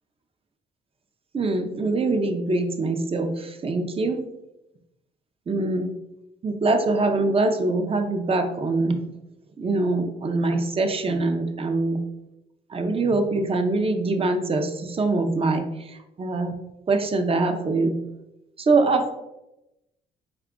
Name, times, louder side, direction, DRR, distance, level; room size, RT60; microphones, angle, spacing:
voice 1, 1.3-4.2 5.5-5.9 6.4-9.0 9.6-12.0 12.7-16.5 16.9-18.0 18.6-19.1, right 3 dB, 30° right, 6 dB, 0.5 m, -23 dB
4.6 x 2.3 x 3.6 m, 0.92 s
cardioid pair, 90°, 20 cm